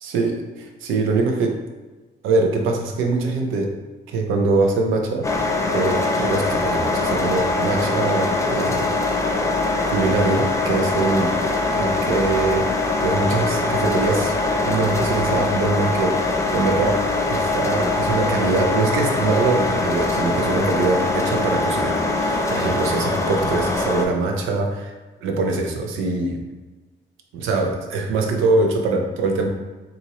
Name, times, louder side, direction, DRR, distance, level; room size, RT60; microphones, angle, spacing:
voice 1, 0.0-1.6 2.2-3.8 4.1-5.3 5.7-8.9 9.9-11.3 11.7-12.7 13.0-14.3 14.6-24.9 25.2-26.4 27.3-29.5, right 3 dB, 85° right, 2 dB, 0.6 m, -23 dB
sound 1, 5.2-24.1, left 2 dB, 15° left, 0.4 m, -22 dB
3.9 x 2.5 x 2.9 m, 1.2 s
cardioid pair, 90°, 20 cm